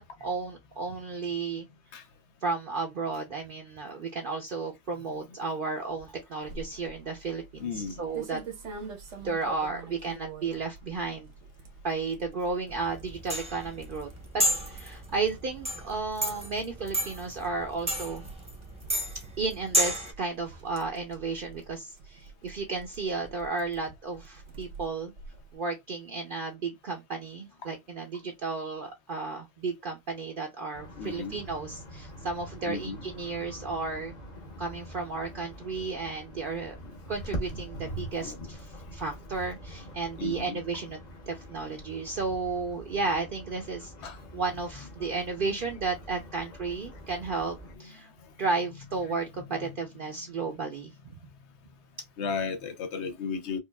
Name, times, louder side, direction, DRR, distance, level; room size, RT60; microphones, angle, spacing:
voice 1, 0.0-1.7 2.4-8.4 9.2-11.3 11.8-18.2 19.4-25.1 25.5-34.1 34.6-36.8 37.1-41.0 41.3-48.1 48.4-50.9, right 4 dB, 55° right, 0.7 m, -33 dB
sound 1, 6.4-25.5, right 5 dB, 80° right, 1.2 m, -47 dB
voice 2, 7.6-8.0 31.0-31.4 32.7-33.0 36.8-37.0 38.2-38.5 40.2-40.6 44.0-44.2 49.1-49.2 49.6-49.8 52.2-53.6, left 5 dB, 70° left, 1.0 m, -35 dB
sound 2, 12.7-20.1, equal, 5° right, 0.7 m, -31 dB
sound 3, 30.7-47.8, equal, 40° left, 1.0 m, -44 dB
4.6 x 2.5 x 2.2 m
omnidirectional pair, 1.2 m